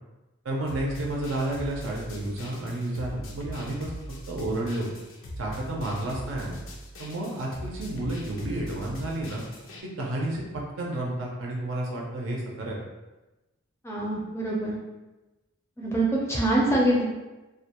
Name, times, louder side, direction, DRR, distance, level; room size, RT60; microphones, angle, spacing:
voice 1, 0.4-3.9 4.3-4.9 5.4-6.6 7.0-9.4 9.8-10.4 10.8-12.8, right 1 dB, 75° right, -2 dB, 0.5 m, -31 dB
sound 1, 0.7-9.8, equal, 80° left, 0.5 m, -41 dB
voice 2, 13.8-14.7 15.8-17.0, right 1 dB, 15° left, -4 dB, 0.4 m, -24 dB
2.3 x 2.1 x 2.8 m, 1.1 s
head